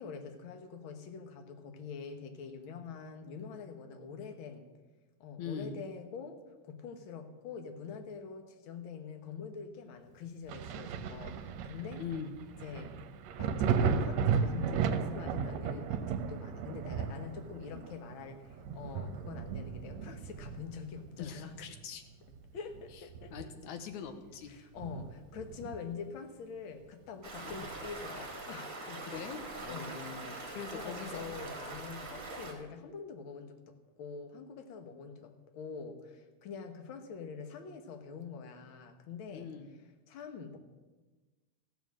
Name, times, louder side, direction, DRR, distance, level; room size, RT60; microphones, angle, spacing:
voice 1, 0.0-4.6 5.2-6.4 6.6-12.0 12.6-12.9 13.4-18.4 18.7-21.6 22.5-23.3 24.5-29.1 29.7-30.0 30.3-39.5 40.1-40.6, left 5 dB, 55° left, 5 dB, 1.6 m, -45 dB
voice 2, 5.4-5.7 12.0-12.3 21.2-22.0 22.9-23.0 23.3-24.5 27.4-27.5 29.0-31.3 39.3-39.7, left 6 dB, 80° left, 7 dB, 2.4 m, -42 dB
Thunder, 10.5-21.8 22.2-23.8 24.1-24.2 24.8-26.1 27.5-27.6, right 6 dB, 75° right, 1.9 m, -35 dB
Stream, 27.2-32.5, right 3 dB, 30° right, 2.1 m, -43 dB
15.0 x 7.1 x 7.4 m, 1.2 s
omnidirectional pair, 3.4 m